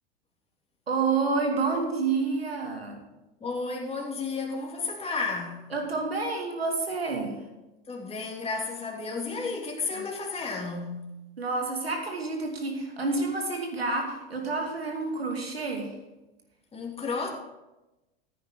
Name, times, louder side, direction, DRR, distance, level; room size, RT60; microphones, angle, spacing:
voice 1, 0.9-3.0 5.7-7.4 9.9-10.1 11.4-15.9, right 3 dB, 85° right, 2 dB, 2.5 m, -29 dB
voice 2, 3.4-5.7 7.9-11.1 16.7-17.3, left 4 dB, 20° left, 0 dB, 2.9 m, -32 dB
15.0 x 9.1 x 3.9 m, 1.0 s
figure-of-eight pair, 85°, 30 cm